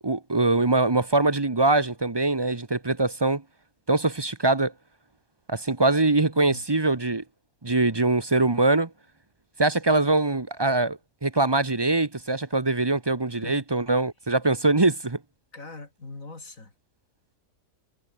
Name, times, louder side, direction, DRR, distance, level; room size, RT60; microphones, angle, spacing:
voice 1, 0.0-3.4 3.9-4.7 5.5-7.2 7.6-8.9 9.6-15.2, right 2 dB, 20° right, 0.8 m, -23 dB
voice 2, 13.3-13.6 15.5-16.7, left 3 dB, 60° left, 4.3 m, -42 dB
omnidirectional pair, 1.6 m